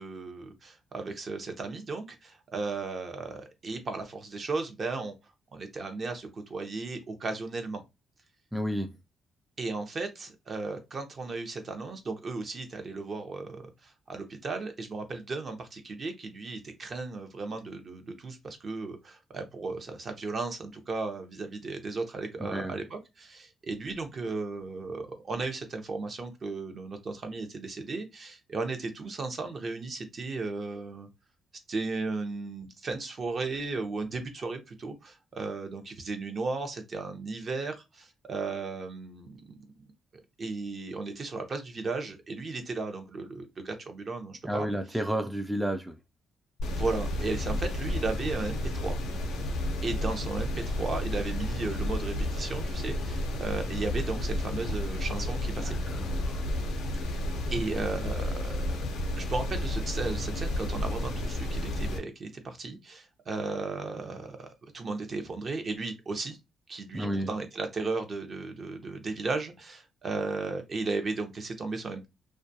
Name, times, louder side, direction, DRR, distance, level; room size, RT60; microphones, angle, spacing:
voice 1, 0.0-5.1 5.5-7.8 9.6-31.1 31.7-39.8 40.4-45.0 46.7-49.0 49.8-55.8 57.1-57.2 57.5-58.7 59.2-66.4 66.7-72.1, right 3 dB, 45° right, 0.7 m, -35 dB
voice 2, 8.5-8.9 22.4-22.7 44.4-45.9 55.6-56.4 66.9-67.3, equal, 5° right, 0.3 m, -31 dB
sound 1, 46.6-62.0, left 1 dB, 85° left, 0.5 m, -31 dB
2.3 x 2.2 x 2.6 m
cardioid pair, 90°, 0 cm